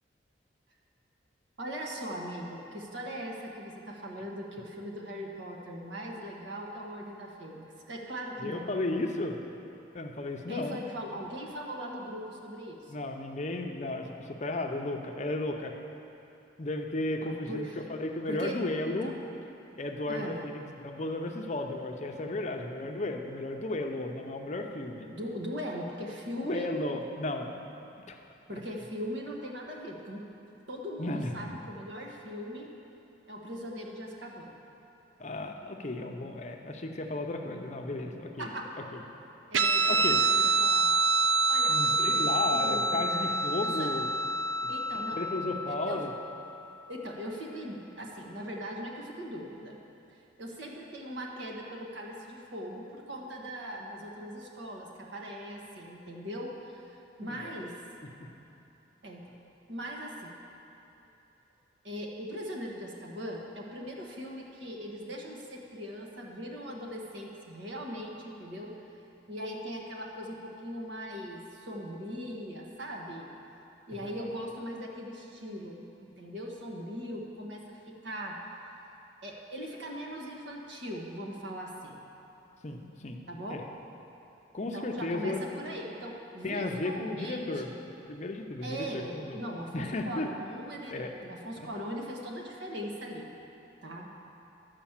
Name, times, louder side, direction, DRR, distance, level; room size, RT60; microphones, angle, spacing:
voice 1, 1.6-8.7 10.5-12.9 17.2-17.8 18.3-18.6 18.8-19.2 20.1-20.4 25.1-26.7 28.5-30.3 30.7-32.7 33.3-34.5 38.4-38.6 39.5-40.9 41.5-43.3 43.6-43.9 44.7-45.2 45.7-46.1 46.9-49.8 50.1-57.8 59.0-59.2 59.7-60.4 61.8-68.8 69.3-73.3 73.9-78.4 79.2-82.0 83.3-83.6 84.7-87.8 88.6-93.3 93.8-94.1, equal, 70° right, 0 dB, 1.3 m, -40 dB
voice 2, 8.4-9.4 9.9-10.8 12.9-15.8 16.6-19.1 19.8-25.1 26.4-27.5 28.1-28.2 31.0-31.5 35.2-38.5 38.9-39.0 39.9-40.2 41.7-44.1 45.1-46.1 57.2-57.5 58.2-58.3 74.0-74.3 82.6-83.6 84.5-85.4 86.4-87.7 88.1-89.4 89.7-90.3 90.9-91.1 91.6-91.7, left 2 dB, 35° left, 3 dB, 0.6 m, -34 dB
Guitar, 39.5-46.5, right 2 dB, 85° right, 0.4 m, -27 dB
11.5 x 5.1 x 7.2 m, 2.9 s
head